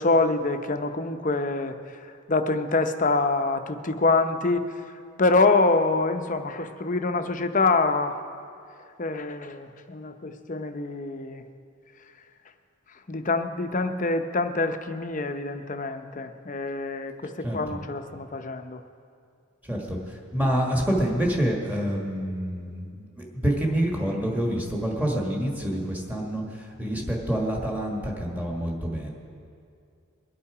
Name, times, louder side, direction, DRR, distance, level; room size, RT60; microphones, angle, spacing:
voice 1, 0.0-8.2 9.0-11.4 13.1-18.8, left 3 dB, 35° left, 8 dB, 0.7 m, -25 dB
voice 2, 20.3-22.8 23.4-26.4 26.8-29.1, equal, 10° right, -1 dB, 1.6 m, -26 dB
22.5 x 8.5 x 4.9 m, 2.4 s
head